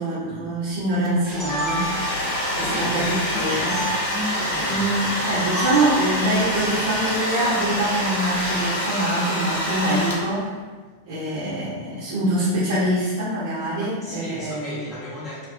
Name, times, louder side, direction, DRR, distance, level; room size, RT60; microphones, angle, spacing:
voice 1, 0.0-1.9 2.5-3.1 3.3-3.8 4.6-10.5 11.1-14.8, right 1 dB, 65° right, -10 dB, 0.8 m, -24 dB
sound 1, 1.0-2.3 3.7-3.9 5.6-6.0, right 1 dB, 5° right, 0.8 m, -29 dB
Domestic sounds home sounds, 1.3-10.5, equal, 60° left, 0.6 m, -26 dB
sound 2, 1.3-9.3, right 3 dB, 40° right, 0.4 m, -38 dB
voice 2, 2.4-7.1 14.0-15.5, left 1 dB, 15° left, -9 dB, 0.6 m, -35 dB
2.4 x 2.3 x 2.6 m, 1.4 s
figure-of-eight pair, 90°, 0 cm